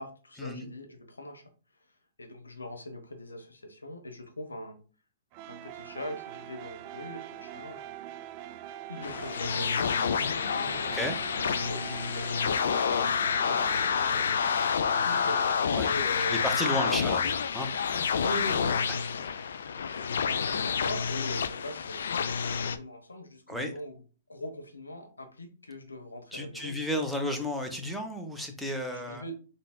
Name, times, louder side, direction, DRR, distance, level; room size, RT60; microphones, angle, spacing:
voice 1, 0.0-1.5 2.2-4.8 5.5-7.9 8.9-11.0 11.6-14.2 14.8-16.9 18.2-19.2 19.9-22.1 22.6-24.0 24.3-26.7 28.9-29.3, left 1 dB, 85° left, 5 dB, 0.9 m, -41 dB
sound 1, 5.3-15.5, right 11 dB, 40° right, 0.3 m, -43 dB
sound 2, 9.0-22.8, left 6 dB, 70° left, 0.3 m, -28 dB
voice 2, 16.3-18.0 19.2-19.5 23.5-23.7 26.3-29.2, left 1 dB, ahead, 4 dB, 0.8 m, -33 dB
3.8 x 3.8 x 2.2 m, 0.37 s
figure-of-eight pair, 120°, 0 cm